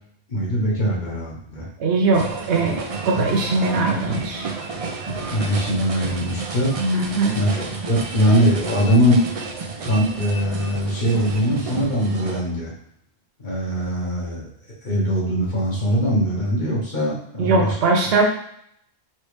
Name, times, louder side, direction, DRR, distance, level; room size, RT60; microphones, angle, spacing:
voice 1, 0.3-1.6 5.3-6.7 7.3-9.2 9.8-12.7 13.4-14.5 14.8-17.7, equal, 45° left, -6 dB, 1.6 m, -21 dB
voice 2, 1.8-4.5 6.8-7.4 17.4-18.3, right 3 dB, 70° right, 1 dB, 1.0 m, -21 dB
sound 1, 2.1-12.4, right 4 dB, 45° right, 0.5 m, -31 dB
4.4 x 3.2 x 3.2 m, 0.69 s
omnidirectional pair, 1.1 m